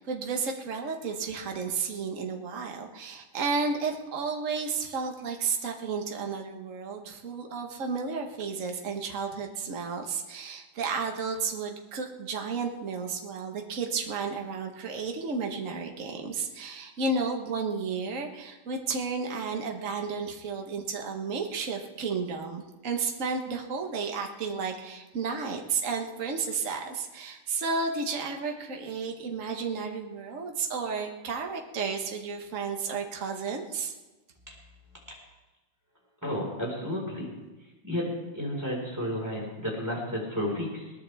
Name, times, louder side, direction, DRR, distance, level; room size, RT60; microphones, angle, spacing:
voice 1, 0.0-33.9, right 4 dB, 75° right, 2 dB, 0.7 m, -32 dB
voice 2, 36.2-37.3 37.8-40.9, left 1 dB, 5° right, -3 dB, 4.4 m, -32 dB
21.0 x 18.5 x 3.5 m, 1.1 s
omnidirectional pair, 3.6 m